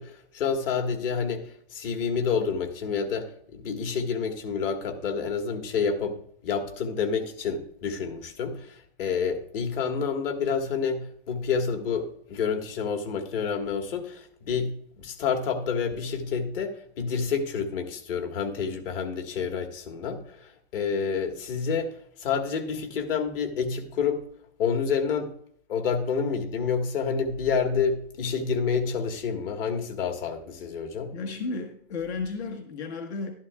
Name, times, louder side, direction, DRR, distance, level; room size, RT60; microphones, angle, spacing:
voice 1, 0.0-24.2 24.6-25.3 25.7-31.1, left 6 dB, 60° left, 5 dB, 1.7 m, -29 dB
voice 2, 31.1-33.3, left 4 dB, 80° left, 3 dB, 1.5 m, -33 dB
12.0 x 11.5 x 2.3 m, 0.65 s
hypercardioid pair, 150°, 32 cm